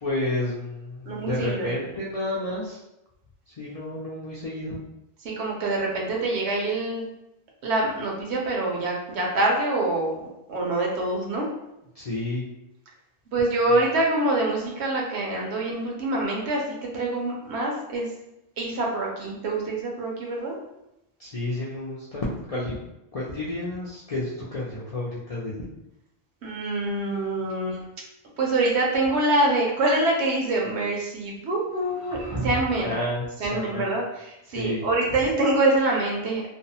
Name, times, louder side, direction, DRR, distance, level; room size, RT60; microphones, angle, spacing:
voice 1, 0.0-2.8 3.5-4.8 11.9-12.5 21.2-22.8 23.1-25.6 32.8-33.9 34.5-34.8, left 1 dB, 55° left, -7 dB, 0.4 m, -30 dB
voice 2, 1.1-1.7 5.2-7.1 7.6-11.5 13.3-16.6 16.9-18.1 18.6-20.6 26.4-27.8 28.4-32.9 33.4-36.6, right 2 dB, 70° right, -2 dB, 0.9 m, -25 dB
sound 1, 29.5-30.3 31.7-32.9, right 2 dB, 35° right, 0.4 m, -35 dB
2.6 x 2.0 x 2.7 m, 0.88 s
omnidirectional pair, 1.2 m